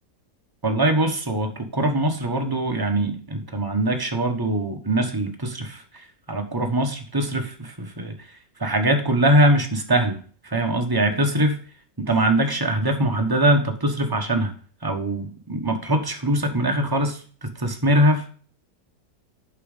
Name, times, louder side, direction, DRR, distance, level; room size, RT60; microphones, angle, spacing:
voice 1, 0.6-5.8 6.3-8.1 8.6-10.2 10.5-11.6 12.0-14.5 14.8-18.2, right 1 dB, 15° right, 4 dB, 0.9 m, -22 dB
8.5 x 6.1 x 5.1 m, 0.43 s
omnidirectional pair, 1.9 m